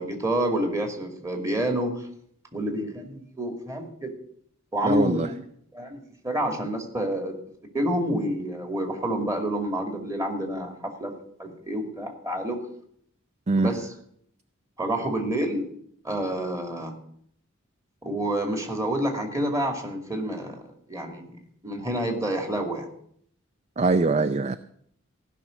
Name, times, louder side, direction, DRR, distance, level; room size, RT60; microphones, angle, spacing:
voice 1, 0.0-2.0 2.5-4.1 4.7-5.3 5.7-7.4 7.7-11.1 11.4-12.6 13.6-13.8 14.8-15.7 16.0-16.9 18.0-20.6 20.9-21.3 21.6-22.9, right 1 dB, 15° right, 2.4 m, -28 dB
voice 2, 4.8-5.3 13.5-13.7 23.8-24.6, right 3 dB, 30° right, 0.5 m, -22 dB
16.0 x 6.1 x 9.4 m
head